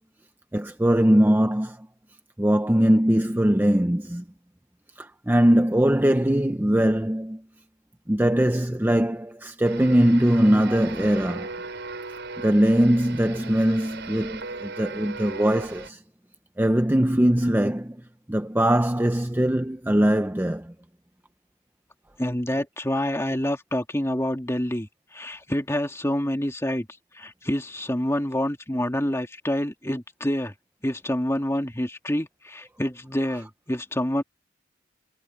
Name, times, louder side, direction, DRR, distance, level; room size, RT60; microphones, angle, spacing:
voice 1, 0.5-1.9 2.4-4.2 5.0-7.4 8.1-11.5 12.4-16.0 16.6-18.0 18.3-20.7 33.3-33.5, right 1 dB, 10° right, 0.6 m, -21 dB
sound 1, 9.6-15.9, right 3 dB, 60° right, 6.4 m, -38 dB
voice 2, 22.2-26.9 27.1-30.5 30.8-34.2, left 1 dB, 15° left, 2.2 m, -27 dB
head